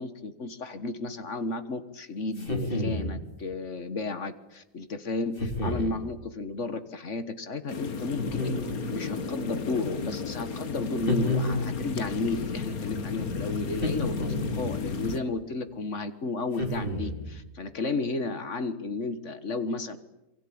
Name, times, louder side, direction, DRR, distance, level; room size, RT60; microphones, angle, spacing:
voice 1, 0.0-8.6 8.9-20.0, left 3 dB, 55° left, 11 dB, 1.8 m, -33 dB
sound 1, 2.4-3.2 5.4-6.0 8.2-9.0 11.1-11.9 13.7-14.7 16.6-17.3, left 1 dB, 35° left, 3.7 m, -30 dB
sound 2, 7.7-15.2, left 4 dB, 70° left, 2.1 m, -33 dB
27.5 x 23.5 x 8.7 m, 0.94 s
omnidirectional pair, 1.6 m